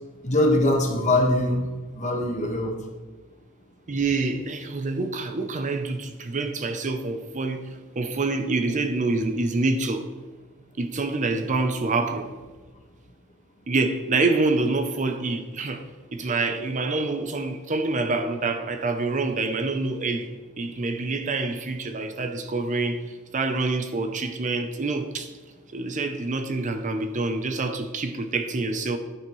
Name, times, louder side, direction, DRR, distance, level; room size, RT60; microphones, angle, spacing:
voice 1, 0.2-2.8, left 1 dB, 35° left, 1.4 m, -22 dB
voice 2, 3.9-10.1 10.8-12.4 13.7-15.8 16.1-20.3 20.6-25.3 25.7-29.0, right 3 dB, 35° right, 0.6 m, -26 dB
10.0 x 9.0 x 3.1 m
head